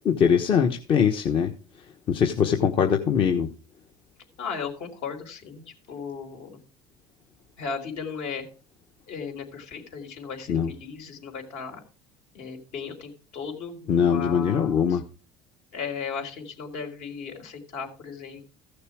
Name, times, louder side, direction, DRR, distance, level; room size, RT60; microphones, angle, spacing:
voice 1, 0.0-1.5 2.1-3.5 10.5-10.7 13.9-15.0, left 7 dB, 45° left, 4 dB, 1.2 m, -22 dB
voice 2, 4.4-6.6 7.6-8.5 9.1-11.8 12.3-15.0 15.7-18.4, left 5 dB, 70° left, 3 dB, 4.0 m, -36 dB
15.0 x 6.7 x 4.8 m, 0.38 s
supercardioid pair, 100°, 12 cm